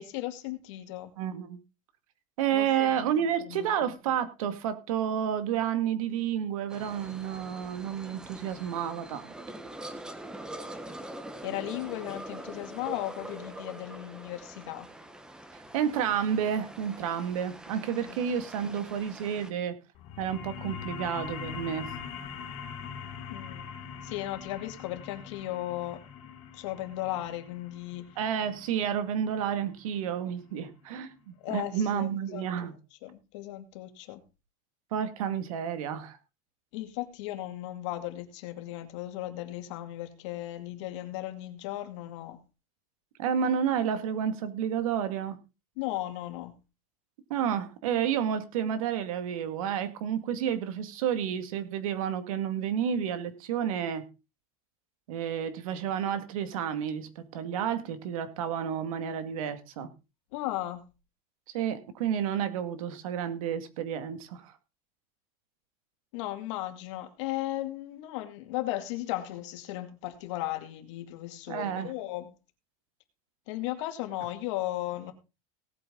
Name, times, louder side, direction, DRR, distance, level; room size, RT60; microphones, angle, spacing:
voice 1, 0.0-1.1 2.5-3.9 11.4-14.9 17.9-18.2 23.3-23.7 24.0-26.0 26.5-28.1 31.4-32.4 33.0-34.2 36.7-42.4 45.8-46.6 60.3-60.9 66.1-72.3 73.5-75.1, left 15 dB, 60° left, 2.3 m, -36 dB
voice 2, 1.2-1.6 2.4-9.3 15.7-19.7 20.2-21.9 28.2-32.7 34.9-36.2 43.2-45.4 47.3-54.0 55.1-59.9 61.5-64.5 71.5-71.9, right 8 dB, 80° right, 2.2 m, -30 dB
sound 1, 6.7-19.5, right 1 dB, 5° right, 1.0 m, -44 dB
sound 2, 20.0-31.1, left 7 dB, 40° left, 3.9 m, -43 dB
18.0 x 8.6 x 3.9 m
supercardioid pair, 175°, 17 cm